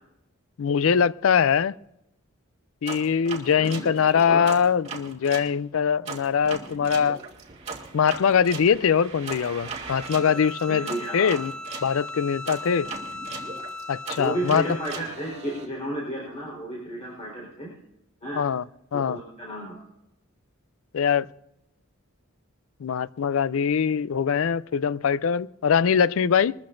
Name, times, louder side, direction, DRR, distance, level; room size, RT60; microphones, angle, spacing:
voice 1, 0.6-1.7 2.8-7.2 7.9-10.9 11.1-11.5 11.8-12.9 13.9-14.6 18.4-18.6 18.9-19.2 20.9-21.3 22.8-26.5, left 7 dB, 70° left, 0.4 m, -22 dB
sound 1, 2.8-5.5 6.0-11.9 12.4-15.6, right 4 dB, 30° right, 2.4 m, -38 dB
voice 2, 3.6-3.9 4.3-4.4 10.7-11.4 14.2-17.7 18.2-18.4 18.9-19.8, right 1 dB, 30° left, 4.1 m, -32 dB
Bowed string instrument, 9.8-15.1, left 1 dB, 5° left, 0.5 m, -38 dB
22.0 x 14.0 x 2.6 m
head